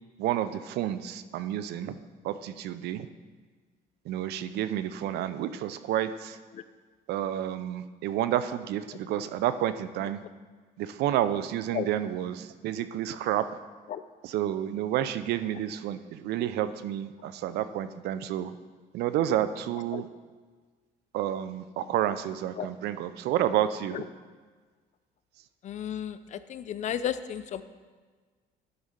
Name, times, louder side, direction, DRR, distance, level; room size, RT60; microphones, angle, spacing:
voice 1, 0.2-2.0 2.2-3.1 4.1-6.4 7.1-10.2 10.8-13.6 14.2-18.5 18.9-20.1 21.1-24.0, right 11 dB, 75° right, 12 dB, 0.5 m, -30 dB
voice 2, 25.6-27.6, left 10 dB, 45° left, 13 dB, 0.4 m, -33 dB
11.0 x 4.2 x 5.1 m, 1.5 s
cardioid pair, 110°, 17 cm